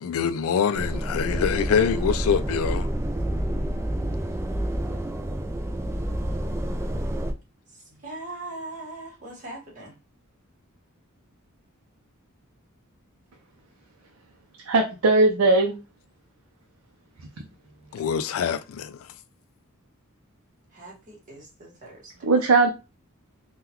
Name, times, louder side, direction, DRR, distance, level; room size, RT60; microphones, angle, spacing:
voice 1, 0.0-2.9 17.9-19.0, left 7 dB, 70° left, 0.3 m, -25 dB
sound 1, 0.7-7.3, right 1 dB, 10° right, 0.3 m, -28 dB
voice 2, 7.7-9.9 20.7-22.3, right 2 dB, 40° right, 1.4 m, -40 dB
voice 3, 14.7-15.8 17.2-17.3 22.2-22.7, right 3 dB, 70° right, 0.6 m, -19 dB
3.7 x 2.3 x 2.9 m
head